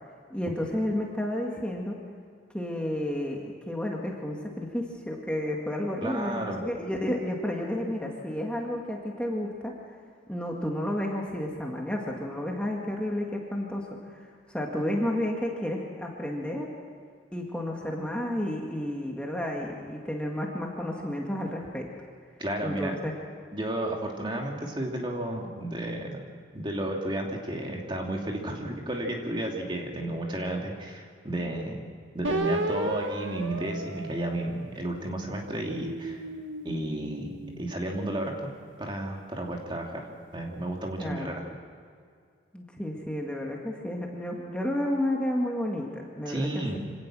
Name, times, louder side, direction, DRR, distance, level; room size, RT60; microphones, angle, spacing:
voice 1, 0.3-2.0 2.5-9.7 10.3-16.7 17.3-21.9 22.6-23.1 41.0-41.4 42.5-46.6, left 1 dB, 5° left, -1 dB, 2.0 m, -31 dB
voice 2, 6.0-6.7 22.4-23.0 23.5-26.3 26.5-31.8 32.1-36.2 36.6-38.5 38.8-41.5 46.2-46.8, right 1 dB, 25° right, 0 dB, 2.6 m, -32 dB
sound 1, 32.2-34.9 35.5-38.0, right 2 dB, 85° right, 1.6 m, -34 dB
26.5 x 17.5 x 6.3 m, 2.1 s
head